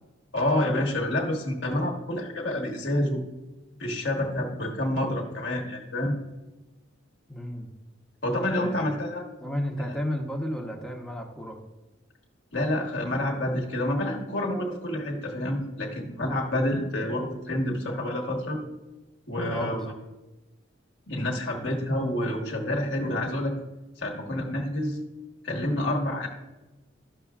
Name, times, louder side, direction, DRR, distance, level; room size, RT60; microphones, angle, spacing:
voice 1, 0.3-3.2 3.8-6.1 8.2-9.2 9.8-9.9 12.5-18.6 19.3-19.9 21.1-23.5 24.0-25.0 25.4-26.3, left 1 dB, 60° left, -1 dB, 1.1 m, -28 dB
voice 2, 7.3-7.7 8.5-8.9 9.4-11.6 19.5-19.9, equal, 5° left, 1 dB, 0.9 m, -33 dB
12.5 x 6.2 x 2.4 m, 1.1 s
head